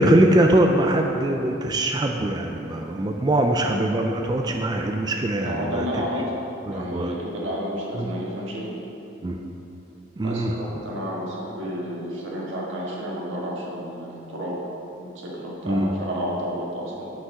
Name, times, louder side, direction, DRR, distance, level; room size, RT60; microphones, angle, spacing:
voice 1, 0.0-5.9 6.7-7.1 8.0-8.1 9.2-9.4 10.2-10.5 15.6-15.9, right 1 dB, 20° right, 2 dB, 0.3 m, -22 dB
voice 2, 5.4-6.3 6.7-8.7 10.2-14.6 15.1-17.1, equal, 85° right, -4 dB, 1.7 m, -31 dB
5.8 x 5.6 x 6.4 m, 2.9 s
head